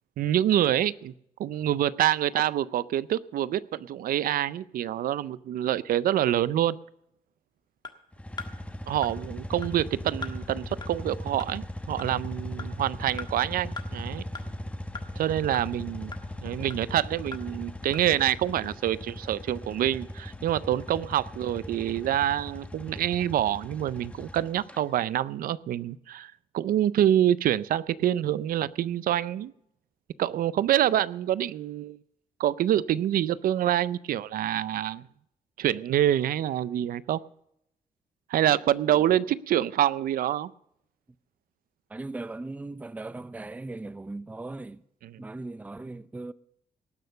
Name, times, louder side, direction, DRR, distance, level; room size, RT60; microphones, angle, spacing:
voice 1, 0.2-1.1 1.4-6.8 8.9-14.2 15.2-16.1 16.4-29.5 30.2-32.0 32.4-35.0 35.6-37.2 38.3-40.5, right 11 dB, 85° right, 0.5 m, -26 dB
sound 1, 7.8-7.9 8.4-8.5 9.0-9.1 9.6-9.7 10.2-10.3 10.8-10.9 11.4-11.5 12.0-12.1 12.6-12.7 13.2-13.3 13.8-13.9 14.3-14.4 14.9-15.1 15.5-15.6 16.1-16.2 16.7-16.8 17.3-17.4 17.9-18.0, left 4 dB, 30° left, 1.5 m, -38 dB
sound 2, 8.1-24.8, left 1 dB, 10° left, 1.1 m, -39 dB
voice 2, 41.9-44.8 45.2-46.3, right 2 dB, 10° right, 0.4 m, -38 dB
18.5 x 6.5 x 6.7 m
cardioid pair, 125°, 14 cm